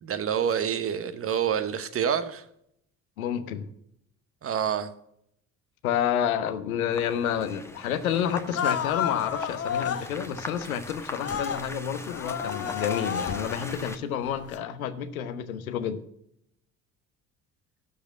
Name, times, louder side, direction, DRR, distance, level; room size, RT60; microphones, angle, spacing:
voice 1, 0.0-2.4 4.4-4.9, right 8 dB, 30° right, 12 dB, 1.0 m, -27 dB
voice 2, 3.2-3.7 5.8-16.0, left 9 dB, 75° left, 10 dB, 1.0 m, -29 dB
sound 1, 6.9-14.0, left 2 dB, 5° left, 1.1 m, -41 dB
sound 2, 8.6-10.1 11.2-11.6 12.0-13.7 14.4-14.6, left 8 dB, 35° left, 1.1 m, -30 dB
12.0 x 5.1 x 8.2 m, 0.74 s
figure-of-eight pair, 60°, 43 cm